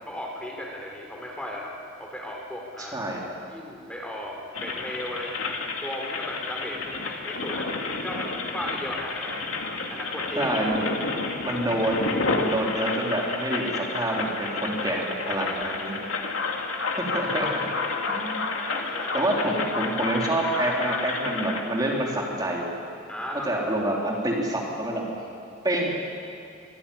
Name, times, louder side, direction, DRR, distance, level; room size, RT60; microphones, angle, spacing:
voice 1, 0.1-3.0 3.5-5.5 5.8-9.4 9.8-10.5 16.5-16.8 18.7-19.2 23.1-23.5, left 1 dB, 5° left, 0 dB, 3.2 m, -36 dB
voice 2, 2.8-3.2 10.3-10.8 11.4-15.9 17.0-17.5 17.8-18.5 19.1-22.7 23.4-25.0 25.6-25.9, right 1 dB, 20° right, -2 dB, 3.2 m, -27 dB
sound 1, 4.5-21.6, left 3 dB, 85° left, 2.5 m, -30 dB
24.0 x 15.5 x 10.0 m, 2.4 s
head